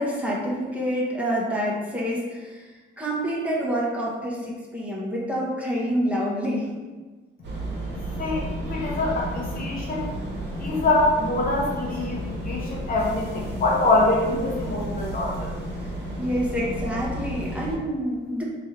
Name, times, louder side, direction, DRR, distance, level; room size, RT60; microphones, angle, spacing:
voice 1, 0.0-2.7 3.0-6.7 16.2-18.4, equal, 5° right, -5 dB, 1.2 m, -27 dB
sound 1, 7.4-17.8, equal, 60° right, 1.5 m, -32 dB
voice 2, 8.2-10.0 10.6-15.5, left 2 dB, 45° left, -3 dB, 0.9 m, -24 dB
3.4 x 3.2 x 4.3 m, 1.3 s
cardioid pair, 90°, 20 cm